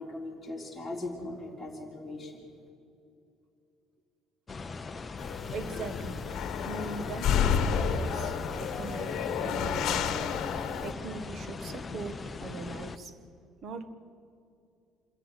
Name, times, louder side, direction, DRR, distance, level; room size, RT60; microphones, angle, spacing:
voice 1, 0.0-2.4, left 2 dB, ahead, -5 dB, 3.7 m, -39 dB
sound 1, 4.5-13.0, left 4 dB, 15° left, 0.6 m, -40 dB
sound 2, 5.2-10.9, left 7 dB, 45° left, 1.4 m, -30 dB
voice 2, 5.5-6.2 6.6-10.3 10.8-13.1 13.6-13.9, right 3 dB, 35° right, 11 dB, 1.3 m, -40 dB
26.5 x 14.0 x 8.2 m, 2.6 s
cardioid pair, 180°, 0 cm